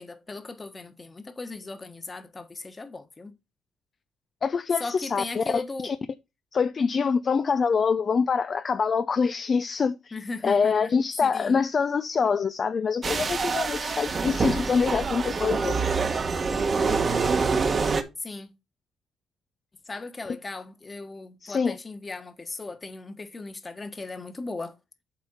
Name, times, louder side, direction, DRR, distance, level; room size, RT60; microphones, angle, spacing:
voice 1, 0.0-3.3 4.8-5.9 10.1-10.9 11.2-11.6 18.2-18.5 19.9-24.7, left 3 dB, 25° left, 1.5 m, -37 dB
voice 2, 4.4-6.0 6.5-10.1 10.4-15.7 20.3-20.4 21.4-21.8, left 5 dB, 45° left, 0.5 m, -25 dB
sound 1, 13.0-18.0, right 4 dB, 40° right, 1.2 m, -26 dB
7.5 x 4.4 x 5.6 m
cardioid pair, 90°, 0 cm